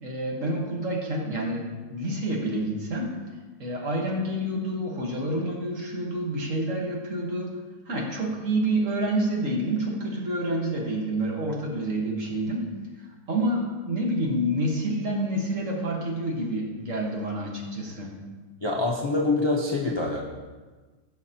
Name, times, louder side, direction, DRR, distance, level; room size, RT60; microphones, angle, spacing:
voice 1, 0.0-3.2 3.6-7.5 7.9-12.7 13.0-18.2, right 1 dB, 50° right, -1 dB, 1.7 m, -28 dB
voice 2, 18.6-20.2, left 2 dB, 25° left, -3 dB, 0.6 m, -25 dB
15.0 x 5.8 x 2.9 m, 1.3 s
omnidirectional pair, 1.8 m